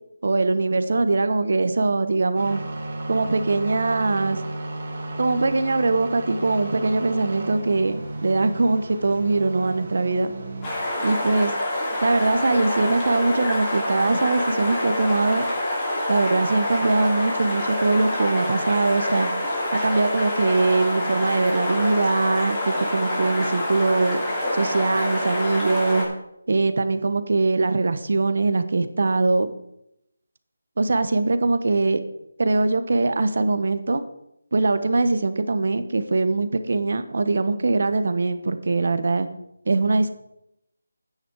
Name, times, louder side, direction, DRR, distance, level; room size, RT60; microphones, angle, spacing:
voice 1, 0.2-2.6 3.1-4.4 5.2-10.3 11.0-11.5 12.0-15.4 16.1-19.3 19.7-24.2 24.5-26.1 26.5-29.5 30.8-32.0 32.4-34.0 34.5-39.3 39.7-40.1, right 3 dB, 55° right, 11 dB, 1.1 m, -22 dB
sound 1, 2.3-10.7, right 2 dB, 35° right, 2.7 m, -34 dB
sound 2, 10.6-26.0, left 1 dB, 15° left, 2.9 m, -26 dB
11.5 x 9.3 x 4.8 m, 0.80 s
figure-of-eight pair, 170°, 0 cm